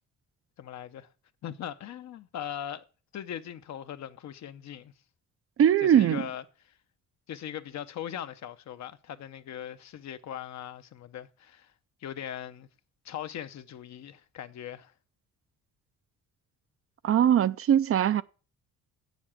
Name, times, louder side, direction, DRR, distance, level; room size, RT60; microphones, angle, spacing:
voice 1, 0.6-1.1 1.4-2.9 3.1-4.9 5.8-6.4 7.3-11.7 12.0-12.7 13.0-14.9, left 10 dB, 65° left, 0.9 m, -40 dB
voice 2, 5.6-6.2 17.0-18.2, right 10 dB, 50° right, 0.5 m, -21 dB
7.7 x 7.2 x 7.3 m
cardioid pair, 90°, 30 cm